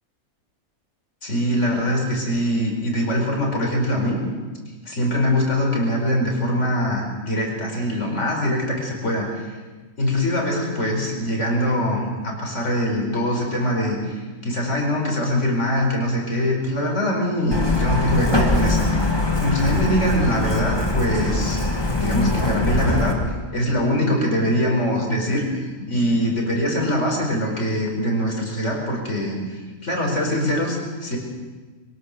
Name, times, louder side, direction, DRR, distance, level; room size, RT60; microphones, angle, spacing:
voice 1, 1.2-4.2 4.9-9.6 10.0-19.1 19.4-21.6 22.0-25.5 25.9-31.2, equal, 60° left, 0 dB, 5.3 m, -23 dB
Truck, 17.5-23.1, left 2 dB, 20° left, 1.9 m, -22 dB
24.0 x 17.5 x 6.7 m, 1.3 s
omnidirectional pair, 1.4 m